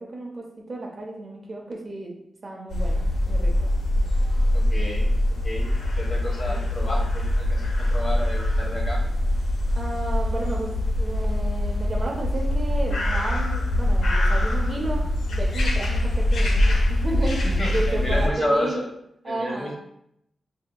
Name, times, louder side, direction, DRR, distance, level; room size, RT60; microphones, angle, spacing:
voice 1, 0.0-2.1 2.4-3.7 6.5-6.6 9.8-10.7 11.0-18.8 19.2-19.7, right 2 dB, 40° right, -1 dB, 0.8 m, -32 dB
sound 1, 2.7-18.3, left 1 dB, 90° left, 0.8 m, -23 dB
voice 2, 4.5-5.1 5.4-9.0 17.2-18.8 19.2-19.7, left 1 dB, 45° left, -3 dB, 1.2 m, -30 dB
5.3 x 2.7 x 2.2 m, 0.76 s
wide cardioid pair, 130°, 0 cm